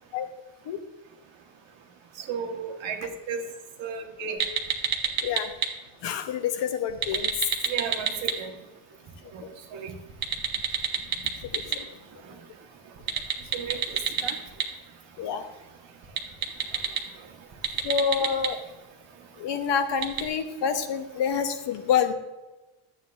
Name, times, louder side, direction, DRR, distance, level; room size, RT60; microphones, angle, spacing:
voice 1, 2.2-3.4 3.8-4.4 7.6-8.5 9.3-9.4 9.7-10.0 13.5-14.4, right 6 dB, 65° right, 3 dB, 1.4 m, -34 dB
sound 1, 4.4-5.7 6.9-8.3 10.1-11.7 13.0-14.6 16.0-17.0 17.5-18.5 20.0-20.2, right 7 dB, 45° right, 1.0 m, -26 dB
voice 2, 6.0-7.3 11.5-11.8 15.2-15.4 17.8-18.6 19.4-22.1, left 7 dB, 60° left, 8 dB, 0.9 m, -27 dB
11.5 x 8.3 x 2.5 m, 1.1 s
cardioid pair, 155°, 49 cm